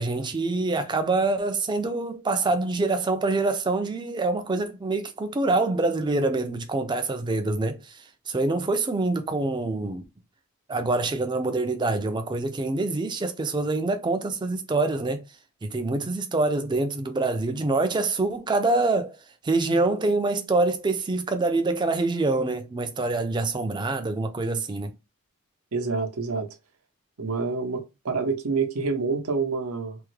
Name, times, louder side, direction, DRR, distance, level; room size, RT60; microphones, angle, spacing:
voice 1, 0.0-10.0 10.7-15.2 15.6-19.2 19.4-24.9, right 2 dB, 20° right, 0.4 m, -25 dB
voice 2, 25.7-26.5 27.2-30.0, right 4 dB, 80° right, 0.7 m, -27 dB
3.4 x 2.1 x 3.1 m
head